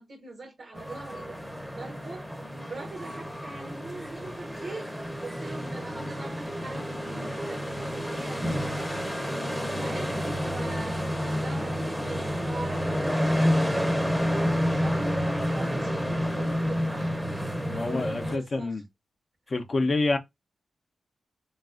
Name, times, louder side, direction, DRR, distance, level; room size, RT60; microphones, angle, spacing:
voice 1, 0.0-1.4 1.7-18.8 19.8-19.9, right 3 dB, 60° right, 0.5 m, -43 dB
sound 1, 0.8-18.4, equal, 5° left, 0.7 m, -29 dB
voice 2, 17.7-18.8 19.5-20.2, left 3 dB, 50° left, 0.5 m, -27 dB
3.2 x 2.3 x 2.4 m
cardioid pair, 65°, 0 cm